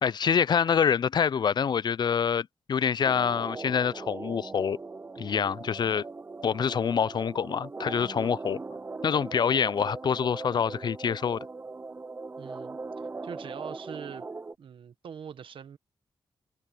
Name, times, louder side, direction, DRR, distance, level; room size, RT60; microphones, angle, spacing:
voice 1, 0.0-4.8 5.2-6.0 6.4-8.6 9.0-11.4, left 7 dB, 55° left, 0.4 m, -26 dB
sound 1, 3.0-14.6, right 3 dB, 25° right, 0.3 m, -40 dB
voice 2, 12.4-12.8 13.2-14.3 14.6-15.8, right 7 dB, 80° right, 1.3 m, -42 dB
cardioid pair, 60°, 9 cm